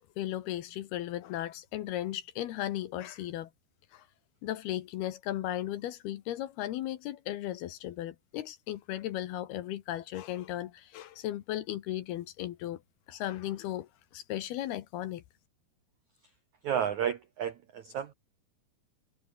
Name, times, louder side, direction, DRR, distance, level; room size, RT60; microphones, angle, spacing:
voice 1, 0.0-3.5 3.9-4.0 4.4-12.8 13.1-15.2, left 13 dB, 70° left, 2.7 m, -36 dB
voice 2, 16.6-18.1, right 8 dB, 70° right, 1.7 m, -32 dB
omnidirectional pair, 5.3 m